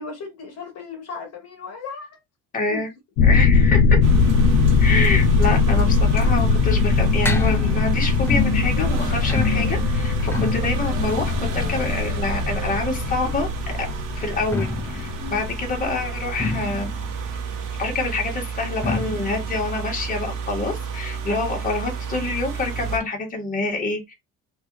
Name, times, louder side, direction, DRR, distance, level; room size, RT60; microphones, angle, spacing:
voice 1, 0.0-2.2 2.7-2.8 15.2-15.6, left 4 dB, 50° left, 1.2 m, -36 dB
voice 2, 2.5-2.9 3.3-4.0 4.8-13.9 14.1-16.9 17.8-24.1, left 3 dB, 25° left, 1.4 m, -26 dB
sound 1, 3.2-16.3, left 4 dB, 85° left, 0.6 m, -20 dB
sound 2, 4.0-23.0, right 6 dB, 70° right, 1.1 m, -31 dB
sound 3, 5.6-13.1 14.2-21.6 21.9-22.0 22.2-22.3 23.0-23.1, left 3 dB, 5° left, 0.4 m, -30 dB
3.3 x 2.5 x 3.0 m
cardioid pair, 105°, 33 cm